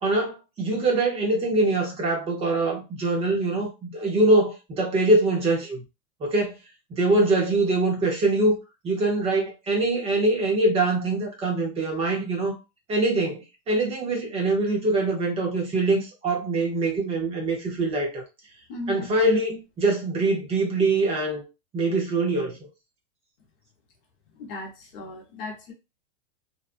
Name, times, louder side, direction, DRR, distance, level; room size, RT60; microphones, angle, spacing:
voice 1, 0.0-5.8 6.2-6.5 6.9-8.6 8.8-12.6 12.9-18.2 18.9-21.4 21.7-22.5, right 2 dB, 15° right, 0.7 m, -23 dB
voice 2, 18.7-19.1 24.3-25.7, left 2 dB, 50° left, 0.9 m, -37 dB
2.7 x 2.2 x 2.5 m
supercardioid pair, 155°, 35 cm